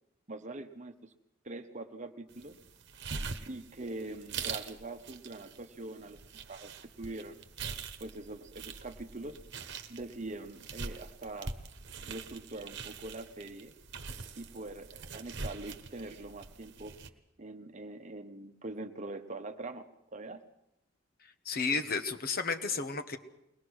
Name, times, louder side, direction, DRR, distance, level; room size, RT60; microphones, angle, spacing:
voice 1, 0.3-1.1 1.4-2.6 3.5-6.2 6.5-6.7 7.0-7.4 8.0-9.4 9.9-11.6 12.0-13.7 14.4-17.0 17.4-19.9 20.1-20.4, right 2 dB, 35° right, 8 dB, 1.1 m, -43 dB
sound 1, 2.3-17.1, right 5 dB, 55° right, 1.2 m, -44 dB
voice 2, 21.4-23.2, left 4 dB, 45° left, 6 dB, 1.2 m, -32 dB
22.0 x 19.5 x 6.4 m, 0.85 s
head